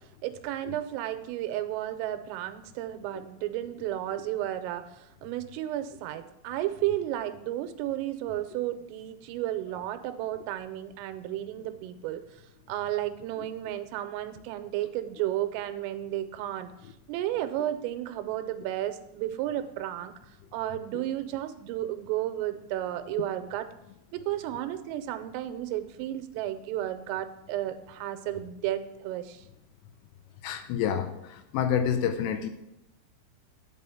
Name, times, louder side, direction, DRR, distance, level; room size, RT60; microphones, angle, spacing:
voice 1, 0.2-12.2 12.7-16.7 17.1-20.1 20.5-23.7 24.1-29.5, right 13 dB, 85° right, 9 dB, 3.2 m, -33 dB
voice 2, 30.4-32.5, left 8 dB, 80° left, 7 dB, 3.1 m, -28 dB
10.5 x 5.5 x 6.9 m, 0.86 s
omnidirectional pair, 6.0 m